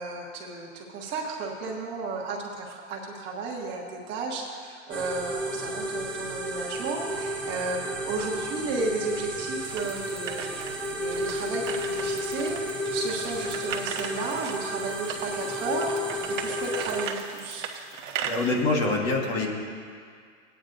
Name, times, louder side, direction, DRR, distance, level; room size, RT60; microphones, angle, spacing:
voice 1, 0.0-10.5 10.9-17.7, right 3 dB, 30° right, -1 dB, 1.3 m, -33 dB
sound 1, 4.9-17.1, equal, 5° left, 0.6 m, -32 dB
sound 2, 9.6-18.5, right 7 dB, 70° right, 1.1 m, -38 dB
voice 2, 17.9-19.5, left 2 dB, 30° left, -1 dB, 1.5 m, -26 dB
18.5 x 9.2 x 2.6 m, 2.1 s
hypercardioid pair, 145°, 38 cm